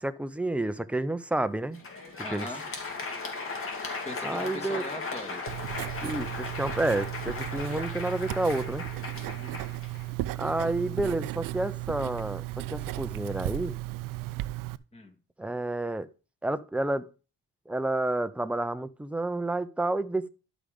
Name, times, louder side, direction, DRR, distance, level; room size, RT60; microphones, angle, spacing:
voice 1, 0.0-1.8 2.3-2.5 4.2-4.8 6.0-8.8 10.4-13.7 15.4-16.1 16.4-17.1 17.7-20.3, right 2 dB, 5° right, 0.6 m, -30 dB
Crowd, 1.6-10.6, left 4 dB, 40° left, 2.6 m, -37 dB
voice 2, 2.2-2.6 4.0-5.4 9.2-9.6 14.9-15.2, left 1 dB, 20° left, 1.9 m, -40 dB
Writing, 5.5-14.8, right 18 dB, 80° right, 0.5 m, -35 dB
11.5 x 5.1 x 5.1 m
cardioid pair, 115°, 32 cm